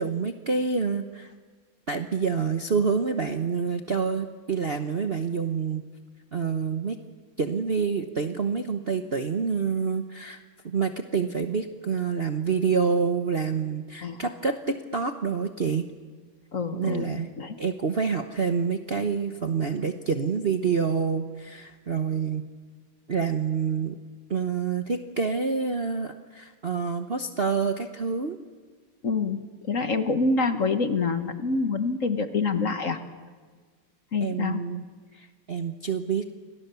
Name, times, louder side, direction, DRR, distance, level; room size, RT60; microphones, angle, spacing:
voice 1, 0.0-1.3 1.9-5.8 6.3-7.0 7.4-10.4 10.6-15.9 16.7-17.3 17.6-22.4 23.1-24.0 24.3-28.4 34.2-34.8 35.1-36.3, right 5 dB, 40° right, 6 dB, 0.9 m, -27 dB
voice 2, 16.5-17.6 29.0-33.0 34.1-34.6, left 4 dB, 45° left, 8 dB, 1.6 m, -26 dB
29.5 x 25.5 x 7.0 m, 1.5 s
omnidirectional pair, 2.2 m